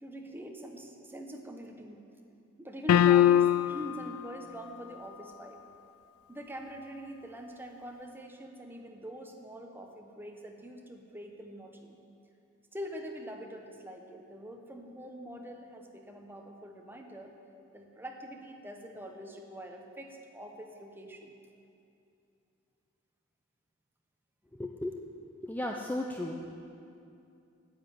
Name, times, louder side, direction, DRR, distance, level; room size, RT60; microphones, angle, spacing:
voice 1, 0.0-2.0 2.6-5.6 6.3-12.0 12.7-17.3 17.7-21.4, equal, 10° right, 3 dB, 1.0 m, -44 dB
sound 1, 2.9-3.9, left 10 dB, 90° left, 0.3 m, -21 dB
voice 2, 24.5-25.1 25.4-26.5, left 1 dB, 10° left, 1 dB, 0.5 m, -35 dB
9.7 x 8.0 x 9.0 m, 2.6 s
head